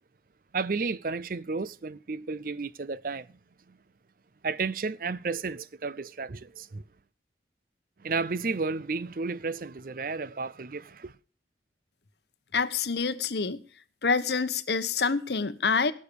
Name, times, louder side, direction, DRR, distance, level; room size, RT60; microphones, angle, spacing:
voice 1, 0.5-3.3 4.4-6.8 8.0-11.1, right 4 dB, 50° right, 0.5 m, -32 dB
voice 2, 12.5-13.6 14.0-15.9, left 5 dB, 65° left, 1.0 m, -27 dB
16.5 x 6.5 x 6.9 m
head